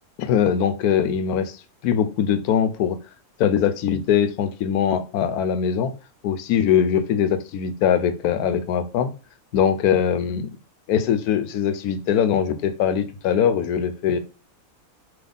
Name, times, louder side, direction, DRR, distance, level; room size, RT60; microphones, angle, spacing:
voice 1, 0.2-1.6 1.8-3.0 3.4-5.9 6.2-9.1 9.5-10.5 10.9-14.2, left 8 dB, 80° left, 11 dB, 1.1 m, -21 dB
3.5 x 3.1 x 3.8 m, 0.32 s
omnidirectional pair, 1.6 m